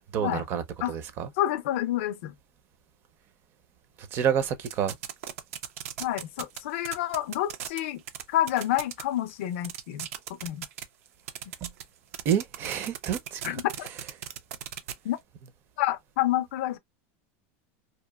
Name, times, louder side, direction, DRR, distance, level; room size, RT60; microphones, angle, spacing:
voice 1, 0.1-0.6 0.9-1.3 4.1-5.0 11.6-11.7 12.2-13.6, right 8 dB, 30° right, 0.5 m, -28 dB
voice 2, 1.4-2.3 6.0-8.0 8.3-10.1 10.4-10.6 13.4-13.9 15.0-15.2 15.8-16.8, left 13 dB, 65° left, 0.5 m, -28 dB
sound 1, 4.7-6.6 6.8-7.8 8.1-8.2 8.5-9.0 9.3-9.4 9.6-10.8 11.3-11.8 12.1-14.9, right 10 dB, 85° right, 0.5 m, -36 dB
2.8 x 2.3 x 2.2 m
supercardioid pair, 170°, 7 cm